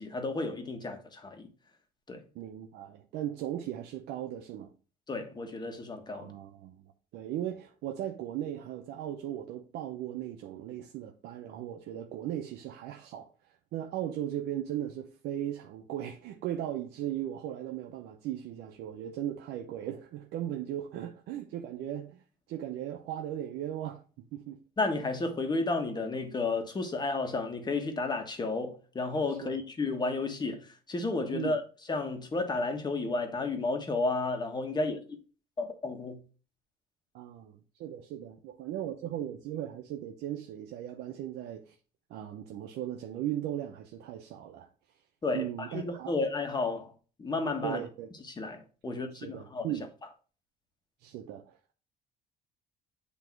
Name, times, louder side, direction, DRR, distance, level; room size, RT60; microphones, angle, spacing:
voice 1, 0.0-1.5 2.1-2.2 5.1-6.3 24.8-30.6 30.9-31.6 31.9-35.0 35.6-36.2 45.2-45.4 45.7-46.9 47.2-47.8 48.3-49.7, left 3 dB, 25° left, 1.4 m, -32 dB
voice 2, 2.3-4.7 6.1-6.8 7.1-13.3 13.7-22.2 22.5-24.0 24.3-24.6 29.3-29.6 31.3-31.6 37.1-41.8 42.1-44.7 45.3-46.1 47.6-48.1 48.9-49.9 51.0-51.7, right 11 dB, 80° right, 0.7 m, -37 dB
8.3 x 3.0 x 4.5 m
cardioid pair, 110°, 17 cm